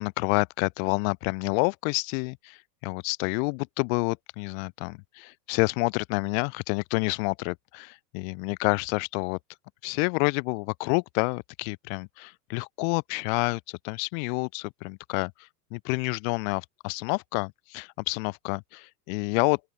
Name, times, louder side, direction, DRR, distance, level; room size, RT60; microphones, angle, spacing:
voice 1, 0.0-9.4 9.8-15.3 15.7-19.6, left 37 dB, 55° left, 3.6 m, -28 dB
open air
hypercardioid pair, 110°, 47 cm